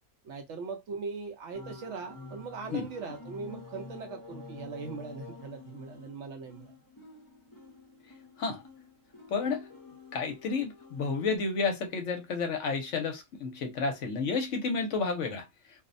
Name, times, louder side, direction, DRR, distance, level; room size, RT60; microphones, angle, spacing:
voice 1, 0.2-6.7, right 4 dB, 65° right, 0.8 m, -40 dB
sound 1, 1.5-11.4, left 3 dB, 20° left, 0.5 m, -49 dB
voice 2, 9.3-9.7 10.1-15.5, left 4 dB, 65° left, 0.9 m, -31 dB
2.6 x 2.0 x 2.4 m
omnidirectional pair, 1.5 m